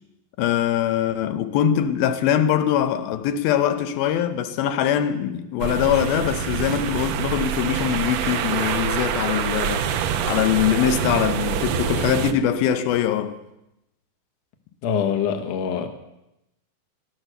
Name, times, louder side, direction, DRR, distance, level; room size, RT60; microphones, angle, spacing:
voice 1, 0.4-9.9 10.2-13.4, left 10 dB, 85° left, 2.7 m, -22 dB
sound 1, 5.6-12.3, right 8 dB, 80° right, 1.5 m, -26 dB
voice 2, 14.8-15.9, left 7 dB, 60° left, 2.1 m, -24 dB
16.5 x 12.5 x 6.7 m
omnidirectional pair, 4.2 m